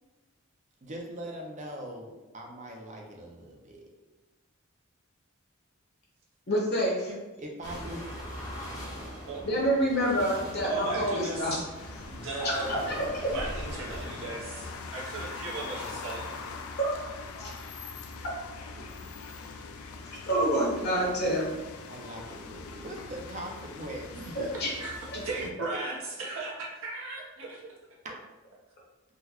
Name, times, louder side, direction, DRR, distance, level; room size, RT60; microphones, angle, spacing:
voice 1, 0.8-3.9 7.1-8.0 21.9-24.6, right 1 dB, 35° right, 0 dB, 0.5 m, -41 dB
voice 2, 6.5-7.1 9.4-11.6 11.9-12.0 12.4-13.3 16.8-16.9 17.3-17.5 20.0-21.5 24.6-24.7, equal, 50° left, -4 dB, 0.9 m, -27 dB
sound 1, 7.6-14.8, equal, 20° left, 0.6 m, -41 dB
voice 3, 10.6-11.6 12.1-12.7 13.3-16.3 19.0-19.1 24.8-24.9 25.2-27.7, right 3 dB, 75° right, -4 dB, 0.8 m, -36 dB
sound 2, 11.8-25.5, left 4 dB, 85° left, 0.3 m, -42 dB
3.8 x 2.1 x 3.0 m, 1.2 s
head